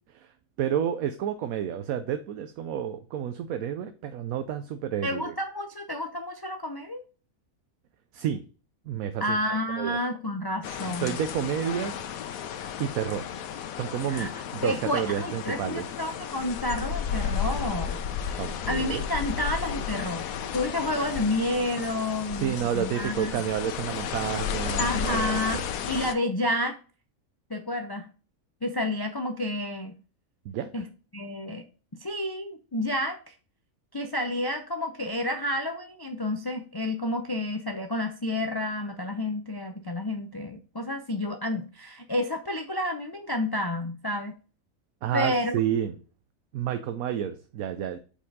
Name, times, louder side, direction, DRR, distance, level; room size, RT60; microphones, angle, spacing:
voice 1, 0.6-5.3 8.1-8.4 8.9-9.4 9.8-10.0 11.0-12.0 12.8-13.3 13.7-15.8 18.4-19.0 22.3-25.6 30.4-30.7 45.0-45.9 46.5-48.0, right 9 dB, 85° right, 1.1 m, -30 dB
voice 2, 5.0-7.0 9.2-11.2 14.1-18.4 18.7-20.3 20.5-23.4 24.8-26.8 27.5-28.1 28.6-30.0 30.7-30.9 31.1-31.6 32.0-33.3 33.9-44.3 45.1-45.6, left 1 dB, 35° left, 0.3 m, -30 dB
sound 1, 10.6-26.1, left 8 dB, 85° left, 1.1 m, -33 dB
5.0 x 4.4 x 5.3 m
omnidirectional pair, 1.4 m